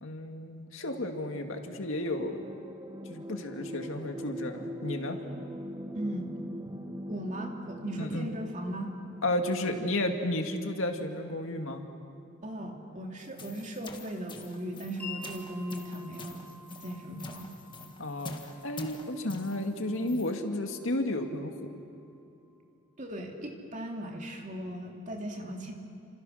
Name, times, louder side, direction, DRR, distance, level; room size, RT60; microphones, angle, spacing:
voice 1, 0.0-2.4 3.1-5.2 8.0-8.3 9.2-11.8 18.0-18.3 18.6-21.5, left 1 dB, 75° left, 4 dB, 2.2 m, -32 dB
sound 1, 0.8-11.5 12.4-12.5, equal, 15° right, 1.2 m, -43 dB
voice 2, 5.9-6.3 7.1-8.9 12.4-16.5 16.8-17.5 23.0-25.7, right 1 dB, 35° right, 1 dB, 2.8 m, -37 dB
sound 2, 13.2-20.4, left 2 dB, 25° left, 1.7 m, -45 dB
Wind chime, 15.0-22.6, left 3 dB, 5° left, 4.1 m, -50 dB
30.0 x 27.0 x 6.5 m, 2.6 s
head